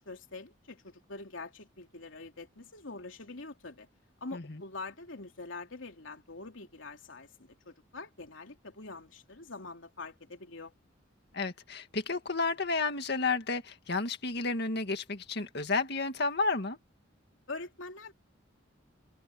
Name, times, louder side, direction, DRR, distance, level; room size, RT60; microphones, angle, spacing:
voice 1, 0.0-3.9 4.2-10.7 17.5-18.1, left 3 dB, 85° left, 3.1 m, -44 dB
voice 2, 11.3-16.8, left 3 dB, 60° left, 2.1 m, -31 dB
open air
head